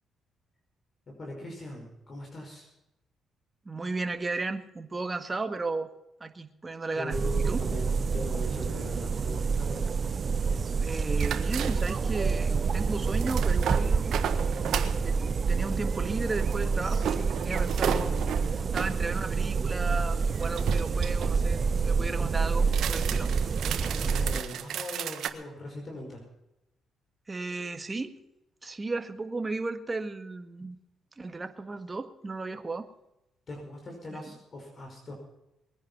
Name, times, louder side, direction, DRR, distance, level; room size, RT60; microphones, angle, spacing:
voice 1, 1.1-2.7 7.0-9.9 17.7-18.5 21.9-22.5 23.8-26.2 33.5-35.1, left 1 dB, 40° left, 0 dB, 5.6 m, -40 dB
voice 2, 3.6-5.9 6.2-7.6 10.7-14.2 14.8-15.2 15.5-18.1 18.7-23.3 27.3-28.2 28.6-30.8 31.2-32.9 34.1-34.3, right 3 dB, 25° right, 8 dB, 1.7 m, -34 dB
sound 1, 7.1-24.4, right 5 dB, 45° right, 0.7 m, -28 dB
sound 2, 11.2-12.1 13.0-15.0 16.3-19.0 20.2-21.4 22.6-25.3, right 9 dB, 75° right, 1.5 m, -34 dB
21.5 x 10.5 x 5.7 m, 0.87 s
cardioid pair, 90°, 0 cm